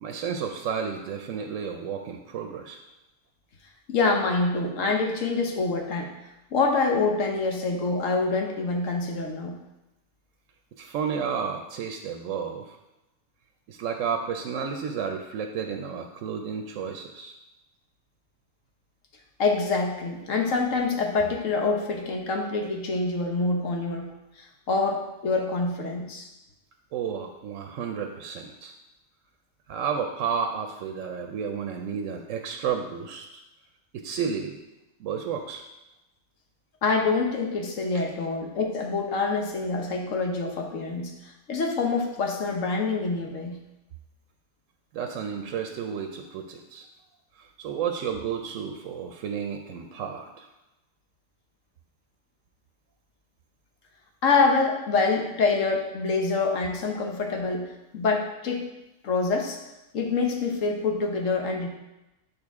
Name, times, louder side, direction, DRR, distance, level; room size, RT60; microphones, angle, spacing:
voice 1, 0.0-2.8 10.8-12.8 13.7-17.3 26.9-28.7 29.7-33.4 33.9-34.6 35.0-35.6 44.9-46.9 47.4-50.5, right 7 dB, 75° right, 4 dB, 0.9 m, -32 dB
voice 2, 3.9-6.1 6.5-9.6 19.4-24.1 24.4-26.3 36.8-43.6 54.2-58.6 59.0-59.6 59.9-61.7, left 4 dB, 75° left, 2 dB, 1.3 m, -26 dB
6.5 x 5.5 x 3.5 m, 0.96 s
omnidirectional pair, 1.4 m